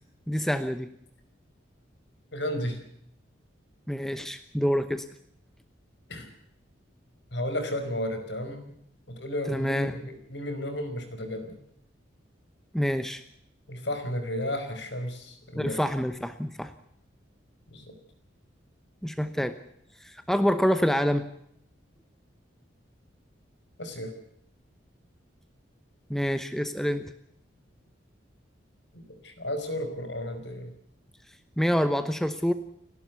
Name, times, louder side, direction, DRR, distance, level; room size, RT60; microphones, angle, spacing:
voice 1, 0.3-0.9 3.9-5.1 9.5-10.0 12.7-13.2 15.6-16.7 19.0-19.5 20.0-21.2 26.1-27.1 31.6-32.5, equal, ahead, 10 dB, 0.9 m, -27 dB
voice 2, 2.3-2.8 6.1-6.3 7.3-8.7 9.1-11.6 13.7-15.8 17.7-17.9 23.8-24.1 29.2-30.7, left 1 dB, 65° left, 8 dB, 5.1 m, -33 dB
29.5 x 12.0 x 8.3 m, 0.72 s
head